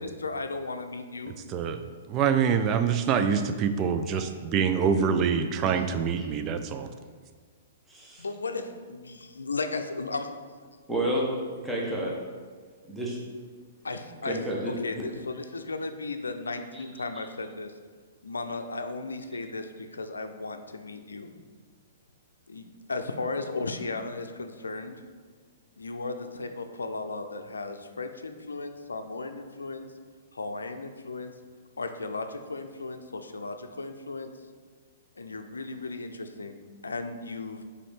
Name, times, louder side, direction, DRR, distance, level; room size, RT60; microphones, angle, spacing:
voice 1, 0.0-1.3 8.2-10.3 13.8-14.4 14.6-17.7 18.2-21.4 22.5-25.0 25.8-29.9 30.3-31.3 31.8-34.3 35.2-37.6, left 3 dB, 80° left, 7 dB, 0.5 m, -35 dB
voice 2, 1.5-1.8 2.1-6.9, right 7 dB, 30° right, 8 dB, 0.4 m, -25 dB
voice 3, 7.9-8.2 10.9-11.2 11.6-12.1 12.9-13.2 14.3-15.0 16.7-16.8, right 1 dB, 5° right, -4 dB, 1.1 m, -30 dB
5.0 x 4.2 x 5.0 m, 1.6 s
figure-of-eight pair, 115°, 0 cm